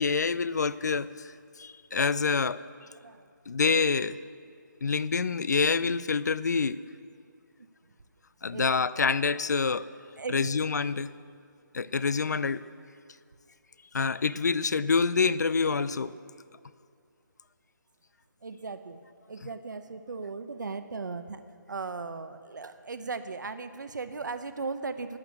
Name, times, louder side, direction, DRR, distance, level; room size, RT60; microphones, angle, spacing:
voice 1, 0.0-1.3 1.6-2.6 3.5-4.2 4.8-6.8 8.4-9.9 10.3-11.1 11.7-12.6 13.9-16.1, left 5 dB, 60° left, 18 dB, 0.5 m, -26 dB
voice 2, 2.9-3.3 7.6-7.7 8.5-8.7 10.2-10.5 18.4-19.0 19.3-25.2, right 4 dB, 65° right, 10 dB, 0.9 m, -37 dB
12.0 x 8.9 x 9.0 m, 2.3 s
hypercardioid pair, 175°, 11 cm